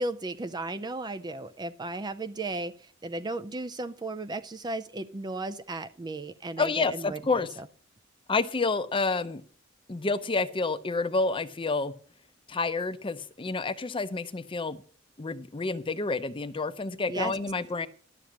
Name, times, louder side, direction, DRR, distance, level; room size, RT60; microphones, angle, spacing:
voice 1, 0.0-7.4 17.1-17.3, right 2 dB, 20° right, 10 dB, 0.4 m, -35 dB
voice 2, 6.6-7.5 8.3-9.4 9.9-11.9 12.5-14.8 15.2-17.9, left 3 dB, 25° left, 12 dB, 0.7 m, -29 dB
11.5 x 7.0 x 6.2 m, 0.43 s
head